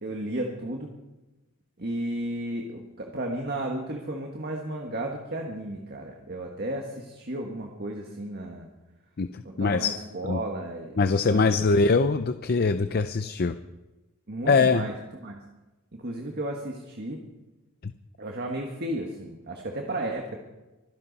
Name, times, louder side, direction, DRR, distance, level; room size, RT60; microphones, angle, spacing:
voice 1, 0.0-0.9 1.8-8.7 9.4-11.7 14.3-14.9 15.2-15.4 15.9-17.2 18.2-20.4, right 1 dB, 50° right, 1 dB, 1.6 m, -33 dB
voice 2, 9.2-9.9 10.2-10.4 11.0-13.5 14.5-14.9 17.8-17.9, left 4 dB, 45° left, 10 dB, 0.5 m, -23 dB
24.5 x 11.0 x 4.1 m, 1.1 s
head